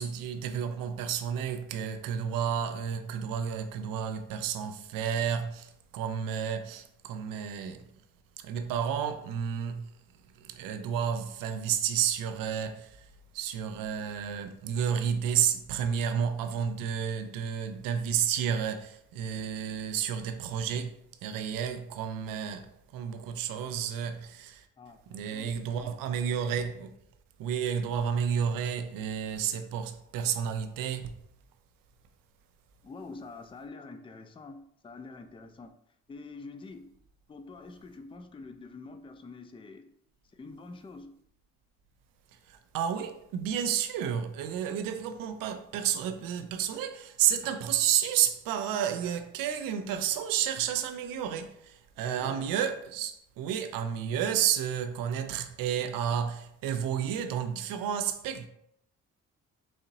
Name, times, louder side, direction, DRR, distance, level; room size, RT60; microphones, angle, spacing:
voice 1, 0.0-7.8 8.4-9.9 10.4-13.0 13.3-20.9 21.2-24.7 25.1-26.9 27.4-31.1 42.5-58.5, right 8 dB, 85° right, 0.5 m, -31 dB
voice 2, 24.8-25.9 32.8-35.8 36.1-36.9 37.3-39.9 40.2-41.1 52.0-52.5, left 3 dB, 15° left, 0.4 m, -46 dB
4.1 x 2.8 x 2.6 m
supercardioid pair, 50°, 33 cm